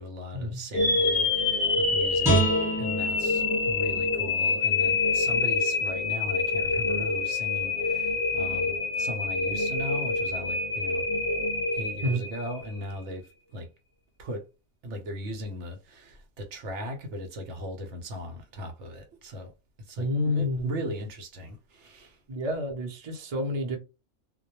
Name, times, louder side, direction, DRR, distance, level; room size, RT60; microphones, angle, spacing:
voice 1, 0.0-2.5 2.8-11.0 11.7-13.3 13.5-13.7 14.2-14.4 14.8-19.5 19.9-20.1 20.3-22.2, equal, 70° right, 0.9 m, -38 dB
sound 1, 0.7-12.8, left 3 dB, 50° left, 0.8 m, -26 dB
Guitar, 2.2-5.4 5.8-5.9, right 2 dB, 5° right, 1.0 m, -30 dB
voice 2, 20.0-20.9 22.3-23.8, left 1 dB, 40° right, 0.6 m, -29 dB
2.1 x 2.1 x 2.9 m
omnidirectional pair, 1.3 m